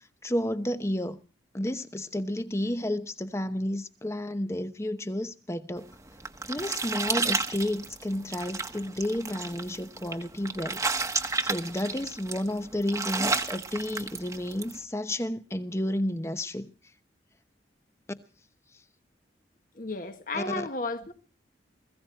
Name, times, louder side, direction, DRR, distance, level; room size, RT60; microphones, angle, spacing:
voice 1, 0.2-1.2 1.5-5.9 6.5-10.8 11.4-16.7 20.3-20.7, left 1 dB, 15° left, 0.9 m, -31 dB
sound 1, 5.9-14.8, right 4 dB, 15° right, 1.3 m, -32 dB
voice 2, 19.7-21.1, left 2 dB, 50° left, 1.7 m, -33 dB
20.5 x 16.0 x 4.4 m
head